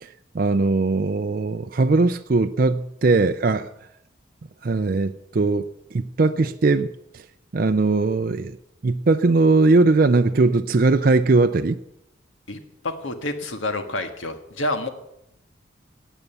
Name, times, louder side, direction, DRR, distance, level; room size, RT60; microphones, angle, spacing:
voice 1, 0.0-3.7 4.6-7.2 7.5-8.5 8.8-11.8, right 3 dB, 45° right, 8 dB, 0.4 m, -20 dB
voice 2, 12.5-14.9, left 2 dB, 80° left, 7 dB, 1.7 m, -28 dB
18.0 x 8.2 x 6.8 m, 0.83 s
head